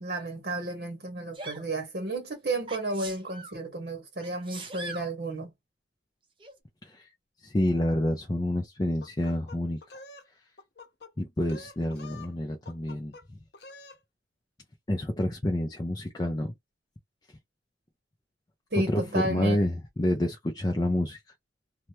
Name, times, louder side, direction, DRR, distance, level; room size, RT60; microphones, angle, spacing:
voice 1, 0.0-5.5 18.7-19.6, right 2 dB, 55° right, 0.9 m, -32 dB
Sneeze, 1.3-1.6 2.7-3.6 4.2-5.1 6.4-6.5, right 3 dB, 25° right, 0.7 m, -41 dB
voice 2, 7.4-9.8 11.2-13.2 14.9-16.5 18.9-21.2, left 1 dB, 20° left, 0.4 m, -28 dB
sound 1, 9.0-10.3 10.6-11.1 11.4-12.3 12.7-13.2 13.5-14.0, left 3 dB, 60° left, 0.8 m, -47 dB
2.8 x 2.2 x 3.0 m
head